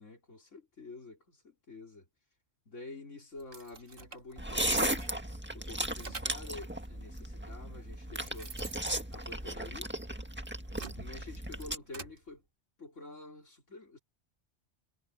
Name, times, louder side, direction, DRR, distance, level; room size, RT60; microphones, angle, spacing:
voice 1, 0.0-2.1 2.7-5.1 5.5-8.5 9.1-10.0 11.0-12.4 12.8-14.0, left 3 dB, 90° left, 4.2 m, -48 dB
sound 1, 3.4-5.3 5.6-6.5 7.3-7.4 7.9-10.0 10.5-12.2, right 3 dB, 50° right, 1.7 m, -46 dB
sound 2, 4.4-11.8, right 1 dB, 10° right, 1.7 m, -36 dB
omnidirectional pair, 1.2 m